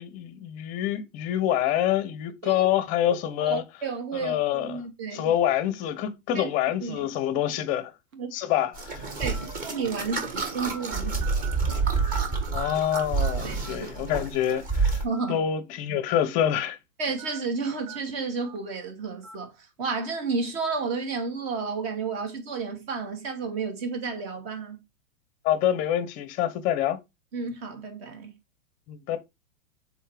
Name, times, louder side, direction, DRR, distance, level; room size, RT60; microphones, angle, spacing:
voice 1, 0.0-3.6 4.1-4.8 5.1-7.9 8.3-9.1 12.5-15.0 15.3-16.8 25.4-27.0 28.9-29.2, left 11 dB, 20° left, 0.6 m, -26 dB
voice 2, 3.4-5.3 6.3-6.5 6.8-7.1 8.1-8.3 9.2-9.4 9.6-11.3 13.4-13.9 15.0-15.4 17.0-24.8 27.3-28.4, right 4 dB, 45° right, 2.6 m, -32 dB
sound 1, 7.2-7.4 8.1-8.2 9.3-9.5 10.1-10.3 10.7-10.8 11.2-12.4 12.6-13.3 13.6-13.8 15.0-15.3 15.7-15.8 17.2-17.4 17.9-18.0 18.4-18.6 19.2-19.4, right 6 dB, 80° right, 2.0 m, -42 dB
sound 2, 8.7-15.0, right 4 dB, 20° right, 1.3 m, -28 dB
7.1 x 4.0 x 3.4 m
supercardioid pair, 160°, 40 cm